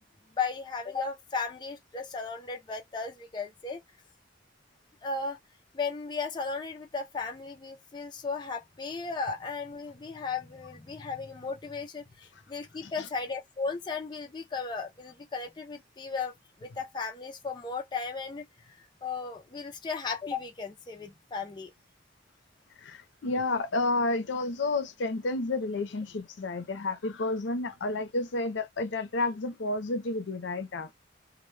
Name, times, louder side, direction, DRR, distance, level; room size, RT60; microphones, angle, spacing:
voice 1, 0.4-3.8 5.0-5.4 5.7-16.3 16.6-21.7, left 4 dB, 25° left, 0.3 m, -35 dB
voice 2, 22.8-30.9, left 2 dB, 75° left, 0.5 m, -31 dB
2.1 x 2.0 x 3.1 m
head